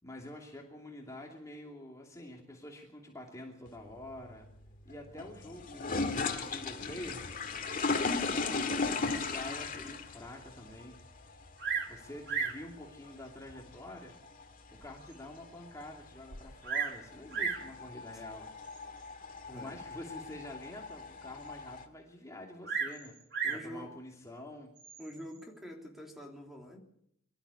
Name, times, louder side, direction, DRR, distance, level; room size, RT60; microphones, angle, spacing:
voice 1, 0.0-4.5 4.8-7.2 7.9-11.0 11.9-14.1 14.7-18.5 19.5-23.1 23.4-24.7, left 1 dB, 15° left, 0 dB, 2.7 m, -47 dB
sound 1, 3.7-21.8, left 4 dB, 40° left, 2.0 m, -38 dB
Bird vocalization bird call bird song, 11.6-12.0 12.3-12.7 13.5-13.6 14.2-14.3 14.8-14.9 15.1-15.2 16.3-17.0 17.3-17.7 18.7-19.0 22.6-23.7 24.8-25.2, right 6 dB, 55° right, 2.8 m, -34 dB
voice 2, 19.5-19.8 23.4-24.0 25.0-26.8, equal, ahead, 1 dB, 3.2 m, -46 dB
24.0 x 13.0 x 8.4 m, 0.72 s
head